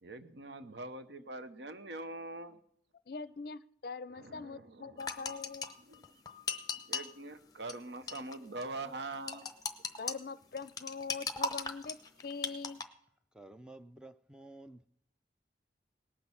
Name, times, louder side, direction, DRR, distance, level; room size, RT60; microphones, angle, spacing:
voice 1, 0.0-2.6 4.1-5.0 5.9-6.2 6.7-9.5, right 2 dB, 75° right, 10 dB, 0.9 m, -44 dB
voice 2, 3.1-5.7 10.0-12.8, left 4 dB, 55° left, 16 dB, 0.5 m, -43 dB
sound 1, 5.0-7.1 7.7-7.8 8.1-8.4 8.6-8.7 9.3-10.1 10.6-12.8, left 4 dB, 20° left, 0.8 m, -37 dB
voice 3, 13.3-14.9, right 1 dB, 5° right, 9 dB, 0.4 m, -52 dB
18.5 x 6.2 x 7.1 m, 0.69 s
head